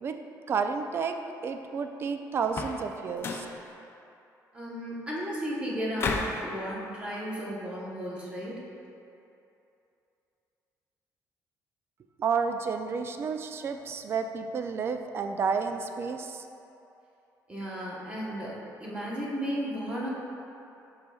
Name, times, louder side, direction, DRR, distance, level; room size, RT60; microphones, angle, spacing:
voice 1, 0.0-3.5 12.2-16.5, right 5 dB, 40° right, 7 dB, 0.3 m, -31 dB
sound 1, 2.4-2.9 3.2-3.6 6.0-6.4, left 4 dB, 40° left, 0.5 m, -32 dB
voice 2, 4.5-8.6 17.5-20.1, equal, 15° right, -6 dB, 1.0 m, -34 dB
7.7 x 5.7 x 2.3 m, 2.8 s
cardioid pair, 135°, 7 cm